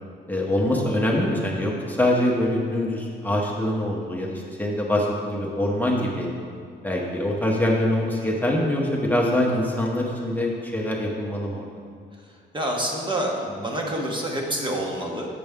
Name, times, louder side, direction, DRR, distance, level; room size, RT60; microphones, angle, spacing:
voice 1, 0.3-6.3 6.8-11.7, left 1 dB, 10° left, -3 dB, 0.9 m, -24 dB
voice 2, 12.5-15.3, right 1 dB, 25° right, -1 dB, 1.0 m, -27 dB
6.8 x 6.7 x 3.5 m, 2.2 s
cardioid pair, 90°, 20 cm